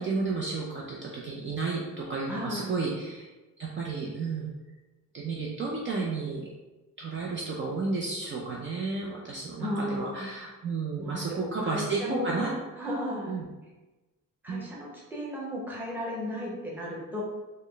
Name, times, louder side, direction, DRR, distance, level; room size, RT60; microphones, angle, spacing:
voice 1, 0.0-3.2 3.6-4.5 5.1-6.4 7.0-12.5 13.3-13.4 14.5-14.7, right 4 dB, 40° right, -3 dB, 0.5 m, -32 dB
voice 2, 2.3-2.7 9.6-10.3 11.0-13.5 14.4-17.2, left 1 dB, 5° right, -5 dB, 0.8 m, -35 dB
4.2 x 2.1 x 3.1 m, 1.1 s
wide cardioid pair, 145°, 31 cm